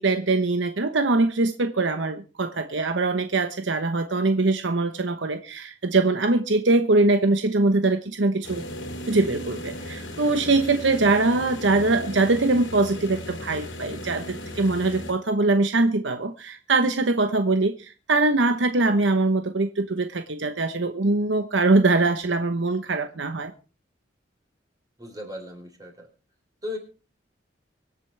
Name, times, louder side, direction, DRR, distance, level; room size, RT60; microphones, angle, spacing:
voice 1, 0.0-8.6 9.1-23.5, right 3 dB, 75° right, 8 dB, 1.0 m, -22 dB
sound 1, 8.4-15.1, equal, 90° left, 3.2 m, -36 dB
voice 2, 25.0-25.9 26.6-26.8, left 2 dB, 20° right, 2 dB, 3.6 m, -35 dB
24.5 x 8.2 x 3.3 m, 0.35 s
head